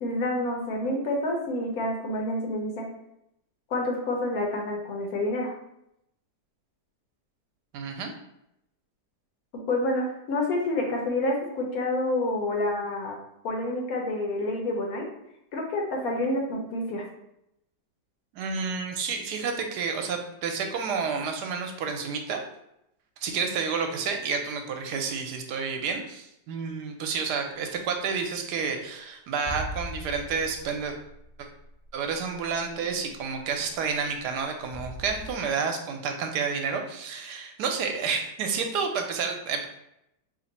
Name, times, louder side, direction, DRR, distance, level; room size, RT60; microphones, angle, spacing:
voice 1, 0.0-2.9 3.7-5.5 9.7-13.1 13.4-15.0 15.5-17.0, left 1 dB, 70° left, 1 dB, 1.1 m, -28 dB
voice 2, 7.7-8.1 18.3-22.4 23.2-30.9 31.4-31.5 31.9-39.7, right 5 dB, 85° right, 4 dB, 1.2 m, -30 dB
sound 1, 29.4-32.2 32.7-32.8 34.7-35.3, left 1 dB, 50° left, 0.4 m, -39 dB
2.9 x 2.5 x 4.0 m, 0.81 s
omnidirectional pair, 1.7 m